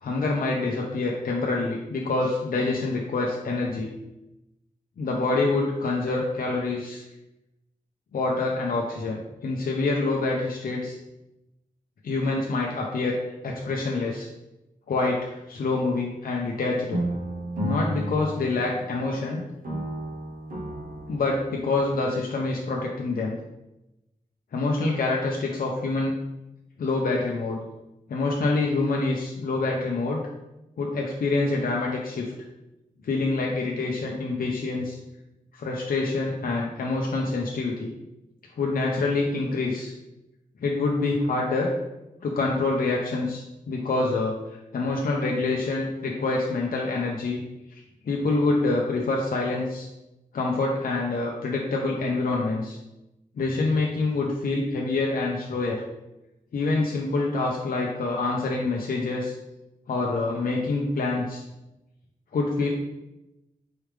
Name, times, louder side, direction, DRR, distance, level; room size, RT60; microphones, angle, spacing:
voice 1, 0.0-4.0 5.0-7.0 8.1-11.0 12.0-13.2 13.4-14.3 14.9-17.0 17.6-19.4 21.1-23.3 24.5-26.1 26.8-27.6 28.1-30.2 30.8-32.3 33.0-35.0 35.5-37.9 38.6-39.9 40.6-41.7 42.2-44.4 44.7-47.4 48.1-49.9 50.3-52.8 53.4-55.8 56.5-59.3 59.9-61.4 62.3-62.7, left 3 dB, 75° left, -2 dB, 0.6 m, -26 dB
sound 1, 16.9-19.3 19.6-21.9, equal, 75° right, 0.9 m, -32 dB
4.7 x 3.3 x 3.2 m, 0.95 s
wide cardioid pair, 85°, 15 cm